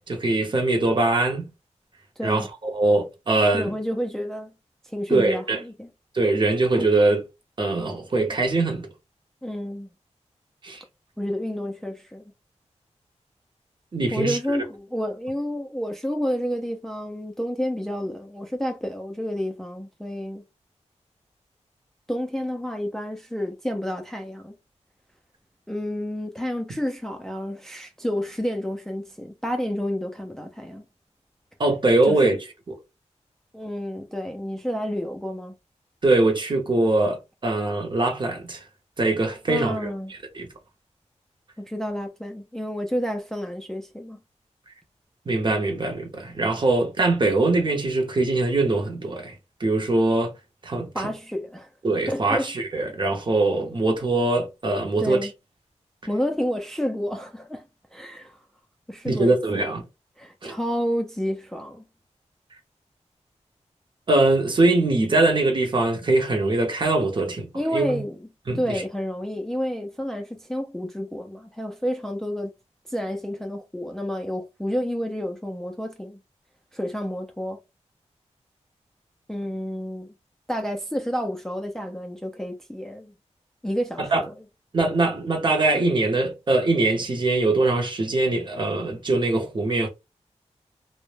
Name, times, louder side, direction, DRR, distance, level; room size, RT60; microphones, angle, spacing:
voice 1, 0.1-1.5 2.2-3.7 5.1-5.6 6.1-7.2 7.6-8.9 10.6-10.8 13.9-14.4 31.6-32.4 36.0-38.6 39.0-40.5 45.3-49.3 49.6-50.3 50.6-51.1 51.8-55.3 59.1-59.8 60.4-60.5 64.1-68.0 68.5-68.8 84.0-84.2 84.7-89.9, right 2 dB, 40° right, 0.7 m, -22 dB
voice 2, 2.2-2.5 3.5-4.5 4.8-5.9 9.4-9.9 11.2-12.2 14.1-20.4 22.1-24.5 25.7-30.8 32.1-32.3 33.5-35.5 39.5-40.1 41.6-44.2 50.9-51.7 52.1-52.5 55.0-55.3 56.1-57.6 57.9-58.4 58.9-59.7 60.2-61.8 67.5-68.3 68.5-72.5 72.9-76.2 76.7-77.6 79.3-80.1 80.5-83.1 83.6-84.3, equal, 5° left, 0.3 m, -30 dB
2.1 x 2.0 x 3.1 m
wide cardioid pair, 115°, 12 cm